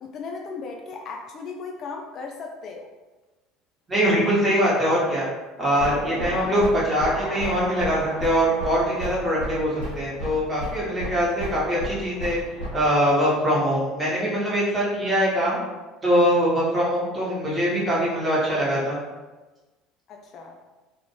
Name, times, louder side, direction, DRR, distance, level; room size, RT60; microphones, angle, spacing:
voice 1, 0.0-2.9 20.1-20.6, left 4 dB, 45° left, 1 dB, 0.3 m, -36 dB
voice 2, 3.9-5.3 5.6-12.4 12.7-15.6 16.0-19.0, equal, 20° right, -7 dB, 1.1 m, -22 dB
sound 1, 5.7-12.8, equal, 90° right, 0.9 m, -33 dB
2.5 x 2.1 x 2.9 m, 1.2 s
figure-of-eight pair, 65°, 0 cm